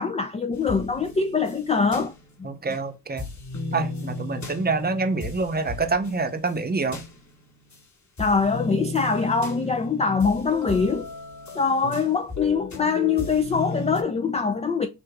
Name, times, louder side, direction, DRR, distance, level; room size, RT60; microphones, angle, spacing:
voice 1, 0.0-2.1 2.4-2.5 8.2-11.1 11.5-14.9, left 5 dB, 15° left, 0.3 m, -23 dB
sound 1, 0.5-2.8 3.2-7.8 8.2-14.0, left 2 dB, 35° left, 1.5 m, -35 dB
voice 2, 2.4-3.3 3.7-7.0 11.8-12.0, right 3 dB, 20° right, 0.8 m, -26 dB
5.7 x 2.4 x 2.3 m
supercardioid pair, 60°, 49 cm